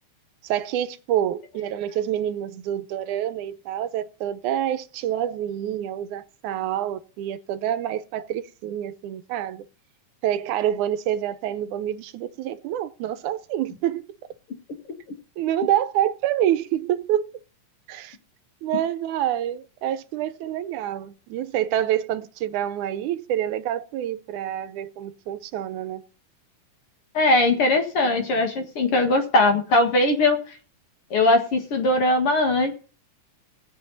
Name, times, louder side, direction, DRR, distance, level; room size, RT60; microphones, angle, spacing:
voice 1, 0.4-9.6 10.2-14.1 15.4-17.3 17.9-18.2 18.6-26.0, right 11 dB, 80° right, 2.1 m, -27 dB
voice 2, 27.1-30.4 31.1-32.7, left 2 dB, 50° left, 2.4 m, -20 dB
19.5 x 7.8 x 4.0 m
omnidirectional pair, 3.5 m